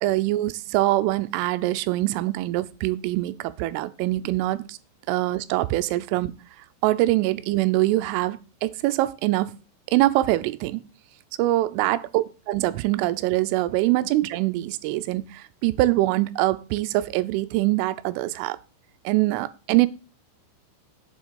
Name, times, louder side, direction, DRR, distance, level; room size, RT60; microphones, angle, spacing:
voice 1, 0.0-4.8 5.1-6.3 6.8-9.5 9.9-10.8 11.4-18.6 19.1-19.9, right 17 dB, 90° right, 3.1 m, -24 dB
7.5 x 6.2 x 5.2 m
omnidirectional pair, 5.5 m